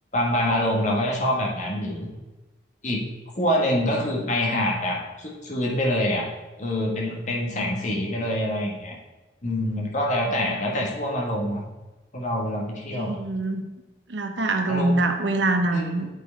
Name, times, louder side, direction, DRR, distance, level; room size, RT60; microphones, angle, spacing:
voice 1, 0.1-2.1 2.8-3.0 3.3-6.2 6.6-9.0 9.4-11.7 12.1-13.2 14.7-15.0 15.7-16.0, left 1 dB, 45° left, -2 dB, 1.5 m, -25 dB
voice 2, 12.9-13.6 14.1-16.1, right 2 dB, 80° right, 6 dB, 0.8 m, -24 dB
8.2 x 4.6 x 4.5 m, 1.1 s
head